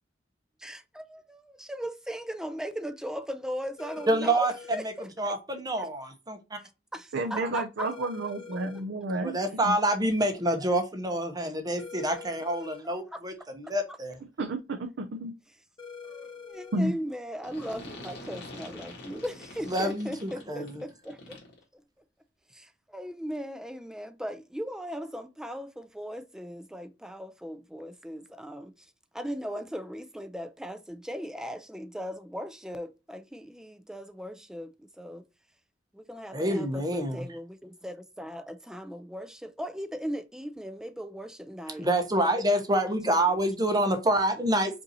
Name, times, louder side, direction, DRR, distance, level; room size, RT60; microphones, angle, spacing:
voice 1, 0.6-5.3 6.9-8.1 10.6-10.7 12.8-13.2 16.0-21.4 22.5-28.7 29.1-34.7 35.0-35.2 35.9-41.9 42.8-43.4, equal, 5° right, 0.4 m, -38 dB
sound 1, 3.8-4.8 7.8-8.8 11.8-12.8 15.8-16.8, left 6 dB, 25° left, 1.5 m, -44 dB
voice 2, 4.1-4.9 5.2-6.6 7.4-7.5 9.2-14.2 19.7-20.8 36.3-37.3 41.8-44.8, right 1 dB, 20° right, 0.8 m, -27 dB
voice 3, 7.1-9.4 9.6-9.7 14.4-14.6 15.0-15.3 16.7-16.9, right 2 dB, 65° right, 0.5 m, -30 dB
sound 2, 17.4-21.6, left 2 dB, 65° left, 1.8 m, -45 dB
5.3 x 2.7 x 2.7 m
head